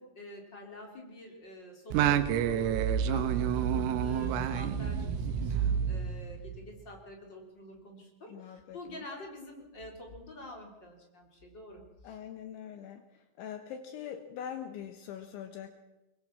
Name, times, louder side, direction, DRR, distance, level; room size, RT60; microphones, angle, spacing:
voice 1, 0.0-12.2, left 1 dB, 25° left, 1 dB, 3.8 m, -47 dB
Singing, 1.9-6.7, right 8 dB, 80° right, 3.7 m, -29 dB
voice 2, 3.1-3.7 8.3-8.8 12.0-13.0 13.4-15.7, left 9 dB, 75° left, 7 dB, 3.2 m, -43 dB
23.0 x 22.0 x 6.1 m, 1.0 s
omnidirectional pair, 6.0 m